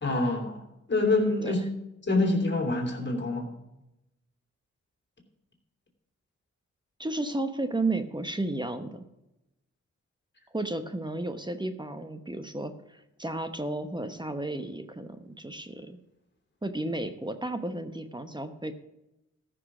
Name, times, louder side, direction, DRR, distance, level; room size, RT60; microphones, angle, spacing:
voice 1, 0.0-0.6 0.9-1.7 2.0-3.5, left 2 dB, 40° left, 2 dB, 3.1 m, -26 dB
voice 2, 7.0-9.0 10.5-16.0 16.6-18.7, right 2 dB, 15° right, 8 dB, 1.0 m, -33 dB
14.0 x 6.3 x 6.0 m, 0.91 s
cardioid pair, 60°, 29 cm